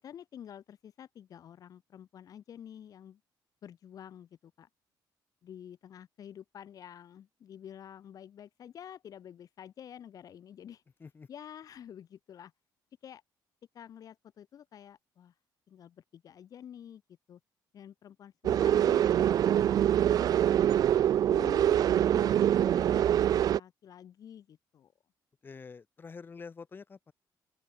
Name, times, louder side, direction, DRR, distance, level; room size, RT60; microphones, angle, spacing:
voice 1, 0.0-3.2 3.6-4.7 5.4-10.8 11.3-12.5 13.0-13.2 13.7-15.3 15.7-17.0 17.3-17.4 17.7-20.9 21.3-23.0 23.3-24.9, left 9 dB, 50° left, 4.9 m, -49 dB
sound 1, 18.4-23.6, right 10 dB, 55° right, 0.7 m, -24 dB
voice 2, 25.4-27.1, left 5 dB, 25° left, 7.1 m, -47 dB
open air
cardioid pair, 145°, 8 cm